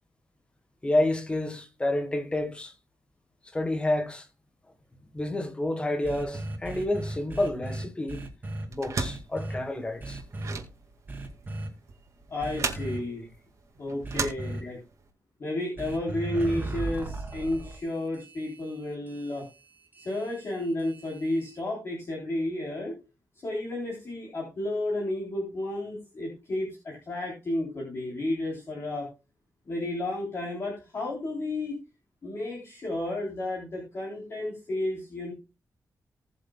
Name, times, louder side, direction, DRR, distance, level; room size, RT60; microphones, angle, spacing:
voice 1, 0.8-2.7 3.5-4.3 5.1-8.2 8.7-10.2, left 1 dB, 15° left, 1.4 m, -29 dB
sound 1, 6.0-8.6 9.0-9.6 10.0-10.5 11.1-11.7 12.4-13.0 14.0-14.6 15.8-21.6, right 2 dB, 25° right, 2.4 m, -37 dB
sound 2, 8.7-15.1, right 4 dB, 50° right, 2.0 m, -36 dB
voice 2, 12.3-13.3 13.8-14.8 15.4-19.4 20.0-23.0 23.4-29.1 29.7-31.7 32.2-35.3, left 1 dB, 40° left, 3.7 m, -32 dB
19.5 x 6.7 x 2.3 m
wide cardioid pair, 175°, 7 cm